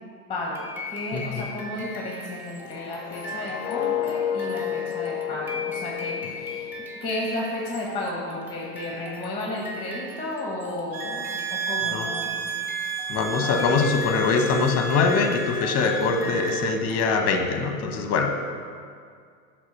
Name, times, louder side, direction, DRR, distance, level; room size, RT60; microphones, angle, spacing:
voice 1, 0.3-6.7 6.9-12.4 13.4-13.6 16.0-16.4, left 1 dB, 10° left, -3 dB, 1.2 m, -33 dB
sound 1, 0.5-17.6, left 1 dB, 5° right, 0.9 m, -40 dB
voice 2, 1.1-1.5 11.9-12.1 13.1-18.3, left 4 dB, 35° left, 5 dB, 0.9 m, -23 dB
sound 2, 2.8-7.8 8.2-8.5, left 10 dB, 70° left, 0.5 m, -31 dB
sound 3, 10.9-16.8, right 3 dB, 30° right, 0.5 m, -31 dB
7.4 x 3.6 x 5.9 m, 2.1 s
hypercardioid pair, 105°, 47 cm